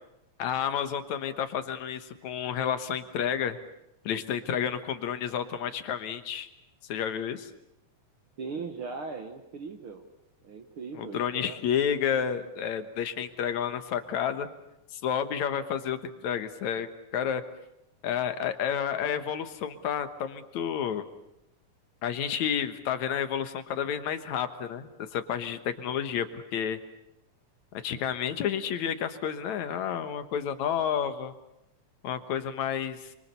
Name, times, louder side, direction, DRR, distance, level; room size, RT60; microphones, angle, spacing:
voice 1, 0.4-3.6 4.1-6.5 6.9-7.5 11.0-14.5 14.9-16.9 17.1-17.4 18.0-21.0 22.0-26.8 27.8-31.3 32.0-33.1, left 8 dB, 70° left, 10 dB, 2.5 m, -30 dB
voice 2, 8.4-10.0 10.4-11.6, right 4 dB, 50° right, 5 dB, 1.9 m, -39 dB
29.0 x 24.0 x 6.9 m, 0.86 s
omnidirectional pair, 3.5 m